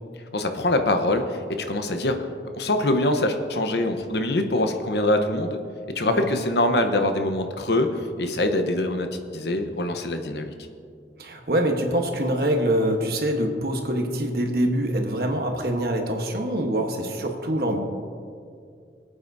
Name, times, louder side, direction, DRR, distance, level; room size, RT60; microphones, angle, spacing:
voice 1, 0.3-1.2 1.7-2.2 2.5-5.6 6.0-7.9 8.2-9.1 9.3-10.5, left 1 dB, 70° left, 6 dB, 0.9 m, -23 dB
voice 2, 11.2-17.8, right 1 dB, 55° right, 3 dB, 1.2 m, -24 dB
21.0 x 8.8 x 2.7 m, 2.3 s
head